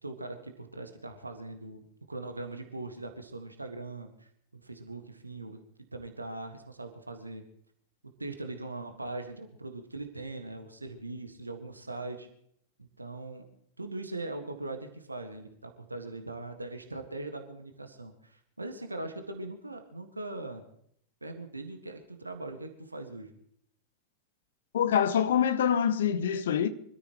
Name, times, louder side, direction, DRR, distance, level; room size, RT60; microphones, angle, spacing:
voice 1, 0.0-4.3 4.6-5.6 5.9-7.4 8.2-12.3 12.8-13.5 13.8-20.6 21.2-23.3, right 2 dB, 85° right, 1.7 m, -40 dB
voice 2, 24.7-26.7, left 8 dB, 60° left, 1.0 m, -25 dB
25.0 x 14.0 x 3.1 m
figure-of-eight pair, 90°, 0 cm